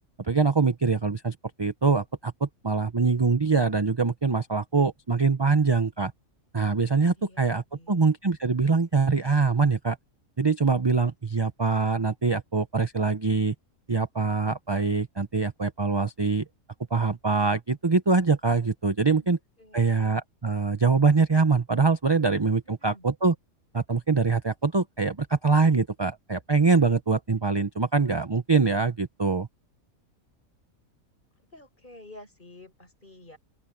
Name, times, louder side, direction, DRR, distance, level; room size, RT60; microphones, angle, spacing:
voice 1, 0.2-6.1 6.5-10.0 10.4-13.5 13.9-16.4 16.9-19.4 19.7-23.3 23.7-29.5, right 4 dB, 25° right, 0.6 m, -24 dB
voice 2, 7.2-8.1 19.1-19.3 19.6-20.1 22.6-23.1 31.4-33.4, left 1 dB, 35° left, 6.1 m, -50 dB
open air
omnidirectional pair, 1.5 m